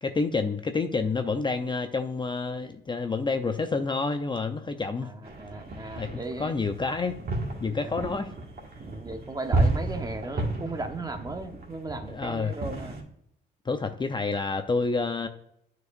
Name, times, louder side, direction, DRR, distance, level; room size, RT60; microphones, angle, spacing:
voice 1, 0.0-5.1 6.0-7.2 7.6-8.3 12.1-12.5 13.7-15.3, left 4 dB, 25° left, 7 dB, 0.5 m, -28 dB
voice 2, 5.0-6.6 7.7-8.0 8.7-13.0, right 2 dB, 20° right, 7 dB, 0.9 m, -36 dB
sound 1, 5.2-13.0, right 2 dB, 50° right, 1.7 m, -32 dB
9.4 x 4.7 x 2.5 m, 0.73 s
cardioid pair, 90°, 20 cm